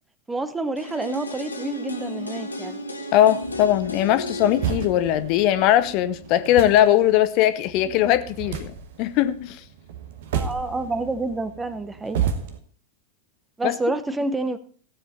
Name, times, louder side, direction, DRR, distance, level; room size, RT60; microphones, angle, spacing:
voice 1, 0.3-2.8 7.9-8.0 10.3-12.2 13.6-14.6, right 2 dB, 10° right, 0.8 m, -28 dB
sound 1, 0.8-6.7 7.0-7.1, left 1 dB, 80° left, 1.5 m, -34 dB
voice 2, 3.1-8.7 9.0-9.6 13.6-13.7, left 12 dB, 40° left, 0.8 m, -20 dB
sound 2, 3.4-12.6, right 8 dB, 55° right, 1.2 m, -33 dB
16.5 x 7.6 x 4.1 m
figure-of-eight pair, 90°, 0 cm